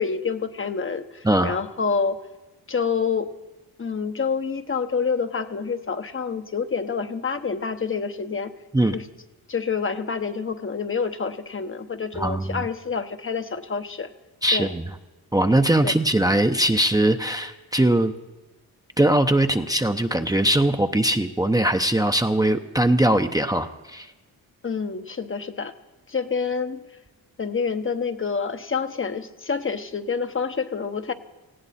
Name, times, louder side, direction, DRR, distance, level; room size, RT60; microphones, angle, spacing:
voice 1, 0.0-2.2 2.7-3.3 3.8-8.5 8.9-9.1 9.5-14.1 14.5-14.7 15.8-15.9 24.6-25.7 26.1-26.8 27.4-31.1, left 5 dB, 35° left, 8 dB, 0.9 m, -27 dB
voice 2, 1.2-1.6 8.7-9.0 12.1-12.7 14.4-14.9 15.3-18.1 19.0-24.1, right 1 dB, 10° right, 7 dB, 0.7 m, -21 dB
19.0 x 15.5 x 4.3 m, 1.1 s
cardioid pair, 70°, 38 cm